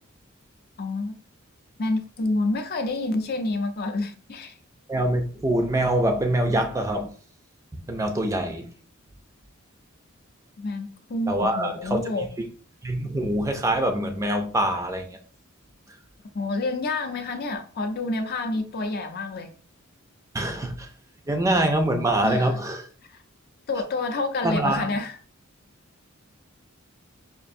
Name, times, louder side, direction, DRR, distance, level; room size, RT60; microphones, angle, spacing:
voice 1, 0.8-1.1 1.8-4.5 10.6-12.3 16.3-19.5 22.2-22.5 23.1-23.2 23.7-25.2, left 2 dB, 50° left, 0.5 m, -28 dB
voice 2, 4.9-7.1 7.7-8.7 11.3-12.5 12.8-15.2 20.3-20.9 21.3-22.9 24.4-24.9, right 1 dB, 15° right, 0.4 m, -24 dB
5.1 x 2.4 x 2.6 m
head